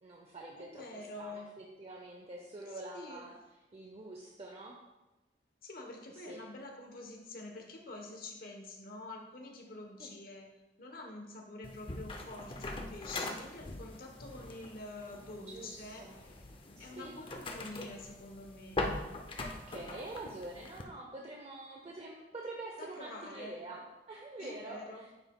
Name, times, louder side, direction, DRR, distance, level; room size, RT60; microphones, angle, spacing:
voice 1, 0.0-3.3 3.7-4.8 6.1-6.4 10.0-10.1 15.4-16.2 16.8-17.2 19.4-25.0, right 2 dB, 35° right, 0 dB, 0.6 m, -46 dB
voice 2, 0.6-1.5 2.7-3.2 5.6-10.5 10.8-16.5 16.8-18.9 22.8-23.6 24.4-25.0, left 2 dB, 55° left, 2 dB, 1.1 m, -47 dB
sound 1, 11.6-20.8, left 2 dB, 30° left, 0.6 m, -42 dB
9.0 x 5.6 x 2.3 m, 1.1 s
head